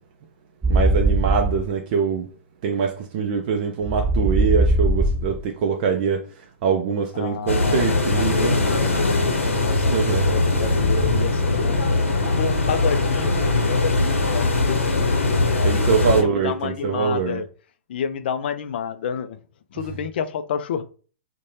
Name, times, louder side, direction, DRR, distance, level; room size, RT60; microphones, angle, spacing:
sound 1, 0.6-1.6 3.8-5.4 9.6-11.2, right 2 dB, 10° right, 0.9 m, -22 dB
voice 1, 0.7-2.3 2.6-8.6 9.7-10.3 15.6-17.4, right 6 dB, 40° right, 0.4 m, -23 dB
voice 2, 7.1-11.8 12.4-15.8 16.2-17.5 17.9-19.4 19.7-20.8, left 7 dB, 50° left, 0.3 m, -30 dB
sound 2, 7.5-16.2, left 3 dB, 75° left, 0.7 m, -21 dB
2.5 x 2.2 x 3.0 m
figure-of-eight pair, 110°, 7 cm